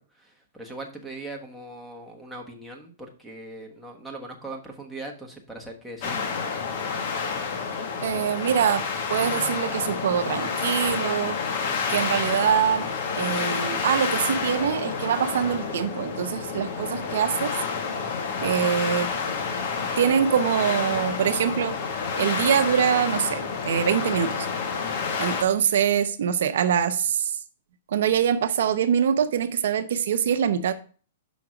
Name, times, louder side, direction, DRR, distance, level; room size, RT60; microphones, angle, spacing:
voice 1, 0.0-6.2, right 2 dB, ahead, 1 dB, 1.3 m, -40 dB
sound 1, 6.0-25.4, left 5 dB, 50° left, 1.3 m, -29 dB
voice 2, 8.0-11.4 11.9-12.9 13.1-17.5 18.4-19.1 20.0-21.7 22.2-24.5 25.2-27.4 27.9-30.7, right 8 dB, 70° right, 9 dB, 0.6 m, -24 dB
5.9 x 5.1 x 4.8 m, 0.40 s
hypercardioid pair, 145°, 0 cm